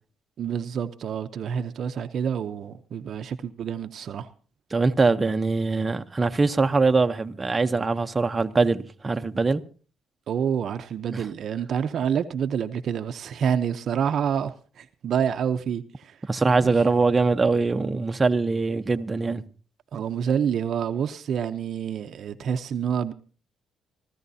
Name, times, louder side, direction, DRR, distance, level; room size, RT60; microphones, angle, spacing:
voice 1, 0.4-4.3 10.3-16.2 19.9-23.1, right 8 dB, 60° right, 0.8 m, -28 dB
voice 2, 4.7-9.6 11.1-11.3 16.2-19.4, right 3 dB, 25° right, 0.9 m, -22 dB
26.0 x 14.0 x 2.8 m
cardioid pair, 90°, 0 cm